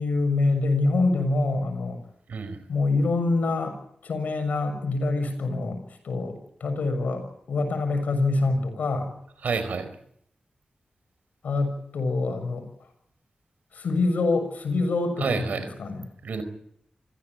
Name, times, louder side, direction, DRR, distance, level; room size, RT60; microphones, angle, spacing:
voice 1, 0.0-2.0 2.7-3.8 4.0-9.1 11.4-12.6 13.7-16.0, left 3 dB, 85° left, 7 dB, 6.5 m, -25 dB
voice 2, 2.3-2.6 9.4-9.9 15.2-15.7 16.2-16.4, right 5 dB, 85° right, 12 dB, 4.4 m, -28 dB
27.0 x 16.5 x 9.2 m, 0.70 s
cardioid pair, 45°, 3 cm